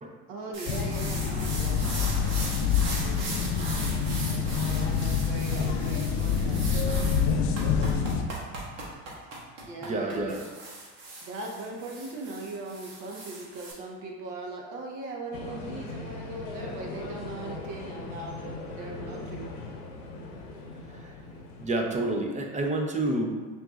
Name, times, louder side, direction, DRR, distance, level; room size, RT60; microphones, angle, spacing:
voice 1, 0.3-1.8 4.6-6.6 9.6-10.4 11.2-19.5, right 2 dB, 60° right, 0 dB, 1.1 m, -39 dB
sound 1, 0.5-13.7, right 2 dB, 75° right, 1.2 m, -39 dB
sound 2, 0.7-8.2, left 6 dB, 50° left, 0.5 m, -27 dB
voice 2, 9.8-10.4 20.9-21.1 21.6-23.3, right 2 dB, 20° right, 2 dB, 0.6 m, -29 dB
sound 3, 15.3-22.5, left 2 dB, 75° left, 0.8 m, -40 dB
5.7 x 2.8 x 2.4 m, 1.4 s
hypercardioid pair, 85°, 37 cm